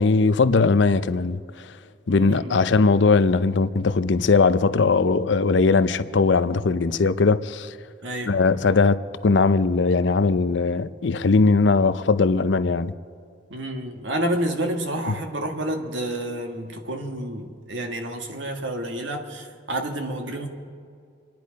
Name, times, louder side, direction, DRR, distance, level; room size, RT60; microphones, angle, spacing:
voice 1, 0.0-1.4 2.1-7.7 8.3-12.9 15.1-15.2, left 4 dB, 70° left, 0.6 m, -19 dB
voice 2, 2.1-2.6 8.0-8.4 13.5-20.5, right 1 dB, 80° right, 1.8 m, -29 dB
26.0 x 10.5 x 5.2 m
head